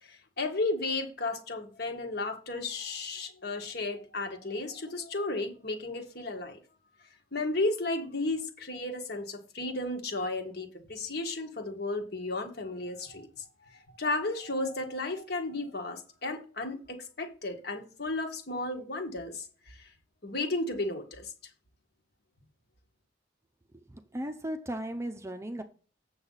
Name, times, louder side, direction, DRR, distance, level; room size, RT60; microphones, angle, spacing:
voice 1, 0.0-6.6 7.3-19.9 20.2-21.3, left 2 dB, 55° left, 1.7 m, -34 dB
voice 2, 23.7-25.6, right 1 dB, 15° right, 0.6 m, -36 dB
8.3 x 6.9 x 4.0 m
head